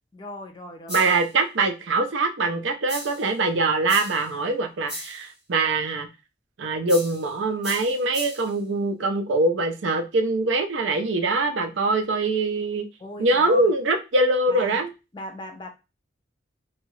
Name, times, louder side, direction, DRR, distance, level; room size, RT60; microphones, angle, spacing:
voice 1, 0.1-1.1 13.0-13.7 14.5-14.8 15.1-15.7, left 1 dB, 20° left, 0.5 m, -37 dB
sound 1, 0.9-1.3 2.9-3.3 3.9-4.3 4.9-5.3 6.9-7.3 7.6-8.5, equal, 5° right, 1.0 m, -36 dB
voice 2, 0.9-6.1 6.6-12.9 13.2-14.9, right 2 dB, 70° right, 0.5 m, -23 dB
2.7 x 2.3 x 3.0 m
head